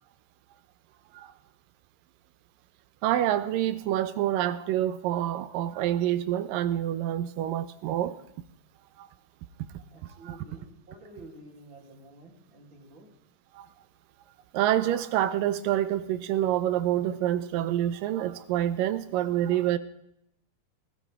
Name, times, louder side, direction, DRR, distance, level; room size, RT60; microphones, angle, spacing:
voice 1, 3.0-8.2 9.0-9.1 13.6-13.7 14.5-19.8, right 12 dB, 80° right, 13 dB, 2.3 m, -27 dB
voice 2, 9.9-13.1, right 2 dB, 35° right, -1 dB, 3.6 m, -50 dB
19.0 x 13.0 x 3.6 m, 0.79 s
omnidirectional pair, 4.0 m